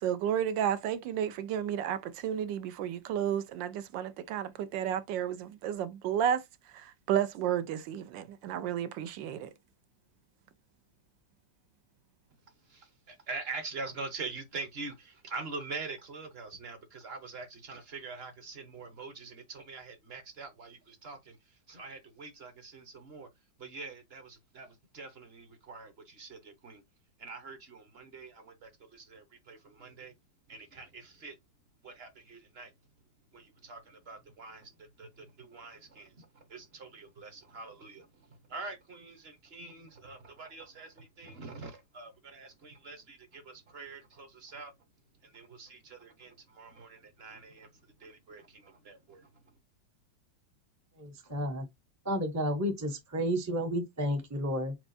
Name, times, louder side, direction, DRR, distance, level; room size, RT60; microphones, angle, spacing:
voice 1, 0.0-6.4 6.7-9.5, right 9 dB, 80° right, 1.3 m, -32 dB
voice 2, 12.7-21.4 21.7-23.3 23.6-26.8 27.2-30.1 30.5-31.3 31.8-32.7 33.3-38.1 38.5-44.7 45.2-47.7 48.0-49.3, right 4 dB, 40° right, 1.0 m, -44 dB
voice 3, 51.0-51.7 52.0-54.7, equal, 20° right, 0.4 m, -31 dB
4.7 x 4.1 x 2.6 m
omnidirectional pair, 2.0 m